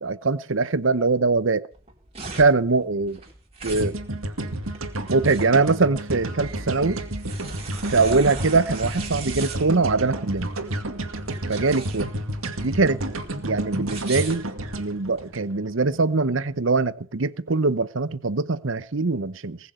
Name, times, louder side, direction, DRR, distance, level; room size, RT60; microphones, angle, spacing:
voice 1, 0.0-1.7 2.4-3.2 3.6-3.9 5.1-7.0 7.9-10.5 11.5-12.1 12.6-13.0 13.4-14.5 14.8-19.6, right 3 dB, 65° right, 0.9 m, -22 dB
sound 1, 1.7-15.2, right 3 dB, 30° right, 4.2 m, -38 dB
sound 2, 3.8-16.0, right 1 dB, 90° right, 2.2 m, -31 dB
20.5 x 7.0 x 8.2 m
head